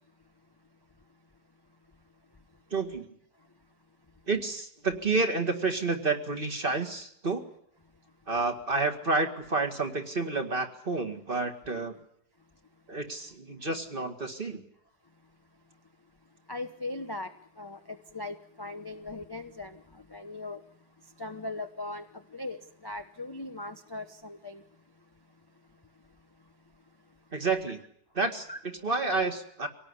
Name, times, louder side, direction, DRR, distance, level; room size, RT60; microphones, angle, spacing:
voice 1, 2.7-3.1 4.3-7.4 8.3-12.0 12.9-14.6 27.3-27.8 28.1-29.7, right 3 dB, 30° right, 2.1 m, -30 dB
voice 2, 16.5-17.3 17.6-19.8 20.1-20.6 21.2-22.0 22.3-24.6 28.5-28.6, left 2 dB, 20° left, 0.7 m, -39 dB
25.0 x 18.5 x 9.9 m
omnidirectional pair, 1.9 m